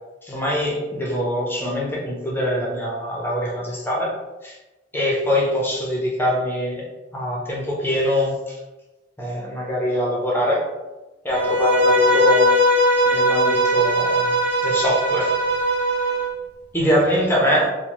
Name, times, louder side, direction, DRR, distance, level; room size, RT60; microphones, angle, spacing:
voice 1, 0.2-4.1 4.4-4.6 4.9-6.8 7.1-8.6 9.2-10.7 11.2-12.5 13.1-14.3 14.6-15.3 16.7-17.7, equal, 10° left, -4 dB, 0.5 m, -23 dB
Bowed string instrument, 11.3-16.3, equal, 70° right, 1.3 m, -19 dB
2.7 x 2.1 x 2.9 m, 1.1 s
head